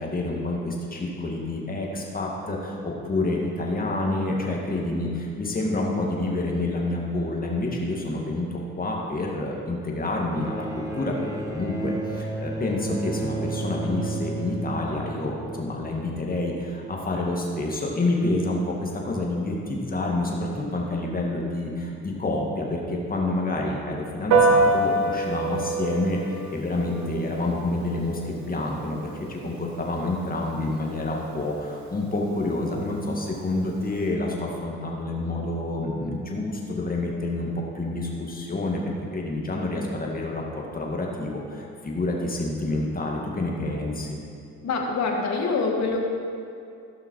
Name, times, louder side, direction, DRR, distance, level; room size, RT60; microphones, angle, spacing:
voice 1, 0.0-37.5 37.7-44.2, left 2 dB, 30° left, -1 dB, 2.1 m, -28 dB
Bowed string instrument, 10.3-15.8 16.9-17.0, right 2 dB, 10° right, 1.4 m, -33 dB
Piano, 24.3-34.1, right 3 dB, 70° right, 1.2 m, -28 dB
voice 2, 44.6-46.0, left 4 dB, 65° left, 1 dB, 1.8 m, -25 dB
15.5 x 5.9 x 4.7 m, 2.5 s
cardioid pair, 90°, 30 cm